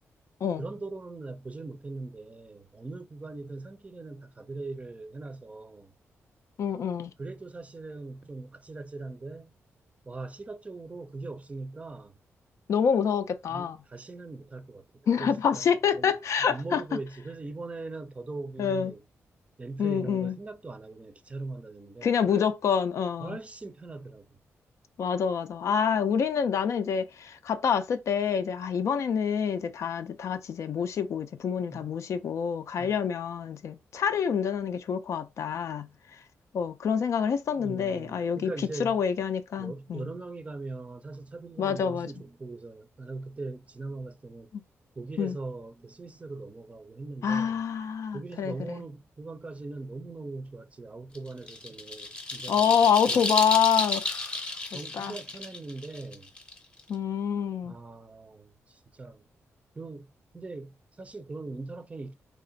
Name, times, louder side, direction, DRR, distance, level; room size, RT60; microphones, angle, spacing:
voice 1, 0.6-5.9 7.2-9.5 10.1-12.1 13.5-14.9 15.2-15.7 15.9-16.1 16.4-19.0 19.6-22.4 23.2-24.2 31.7-31.9 32.8-33.0 37.5-39.0 39.6-44.6 45.0-47.6 48.1-52.7 53.1-53.5 54.7-56.3 57.6-59.2 59.7-60.1 60.3-62.1, right 3 dB, 25° right, 0.5 m, -40 dB
voice 2, 6.6-7.1 12.7-13.8 15.1-16.8 18.6-18.9 19.8-20.4 22.0-23.4 25.0-35.9 36.5-38.5 38.8-40.1 41.6-42.1 44.5-44.6 45.2-45.4 47.2-48.8 52.5-54.4 54.7-55.2 56.9-57.8, left 7 dB, 70° left, 0.4 m, -27 dB
sound 1, 51.1-56.9, left 2 dB, 20° left, 0.8 m, -32 dB
3.3 x 2.4 x 3.9 m
wide cardioid pair, 115°, 5 cm